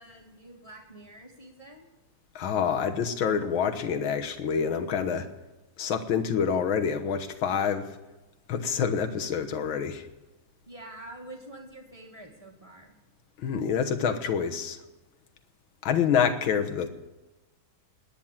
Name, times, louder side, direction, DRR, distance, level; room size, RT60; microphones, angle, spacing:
voice 1, 0.0-1.9 10.7-12.9, right 1 dB, 15° left, 0 dB, 1.8 m, -46 dB
voice 2, 2.4-5.3 5.8-7.9 8.5-10.1 13.4-14.8 15.8-16.9, left 7 dB, 80° left, 7 dB, 2.0 m, -27 dB
17.5 x 10.0 x 7.4 m, 1.1 s
omnidirectional pair, 2.2 m